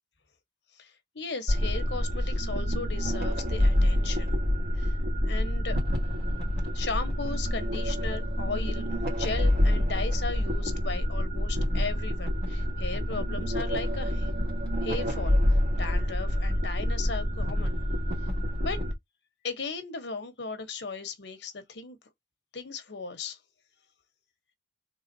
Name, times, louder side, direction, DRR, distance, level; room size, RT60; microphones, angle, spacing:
voice 1, 0.8-4.3 4.8-5.0 5.2-5.8 6.7-8.9 9.2-14.3 14.8-17.8 18.6-18.8 19.4-22.0 22.5-23.4, left 4 dB, 75° left, 1.0 m, -36 dB
sound 1, 1.5-18.9, equal, 65° right, 1.8 m, -27 dB
3.9 x 3.3 x 2.7 m
head